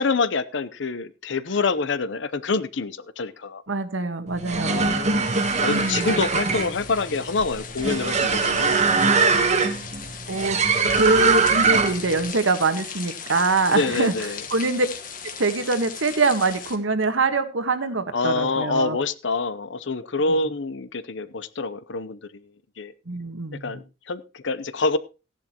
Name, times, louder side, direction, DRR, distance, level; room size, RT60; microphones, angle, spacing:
voice 1, 0.0-3.6 4.6-8.9 11.6-11.8 13.7-14.4 18.1-22.4 22.8-22.9 23.6-25.0, left 3 dB, 65° left, 16 dB, 0.7 m, -26 dB
voice 2, 3.7-4.9 5.7-6.2 10.3-10.6 10.9-14.1 14.5-14.9 15.4-19.0 23.1-23.8, right 3 dB, 75° right, 9 dB, 1.4 m, -24 dB
sound 1, 4.3-12.1, right 4 dB, 35° right, 1.2 m, -21 dB
sound 2, 5.2-16.8, left 7 dB, 45° left, 1.5 m, -38 dB
15.5 x 10.5 x 2.9 m, 0.31 s
head